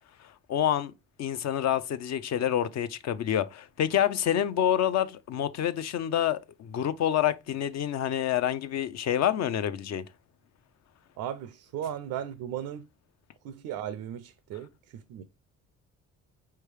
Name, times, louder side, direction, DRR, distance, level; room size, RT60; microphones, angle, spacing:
voice 1, 0.5-0.9 1.2-10.0, left 10 dB, 60° left, 0.5 m, -27 dB
voice 2, 11.2-12.8 13.4-15.2, right 10 dB, 85° right, 0.5 m, -36 dB
4.5 x 3.4 x 3.2 m
cardioid pair, 90°, 30 cm